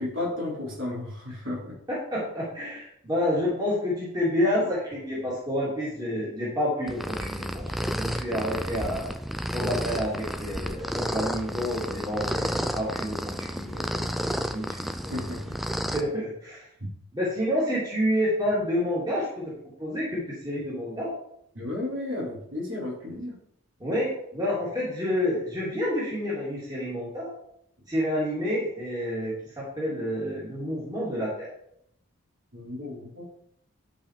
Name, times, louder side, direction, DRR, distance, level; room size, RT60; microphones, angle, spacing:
voice 1, 0.0-1.8 15.1-15.6 21.5-23.4 32.5-33.2, left 2 dB, 60° right, -5 dB, 4.1 m, -33 dB
voice 2, 1.9-9.1 9.5-14.0 14.5-15.1 15.9-16.7 17.1-19.5 19.8-21.1 23.8-27.3 27.9-31.5, equal, 20° right, -7 dB, 3.1 m, -29 dB
sound 1, 6.9-16.0, equal, ahead, 0.4 m, -31 dB
11.0 x 5.2 x 5.0 m, 0.72 s
head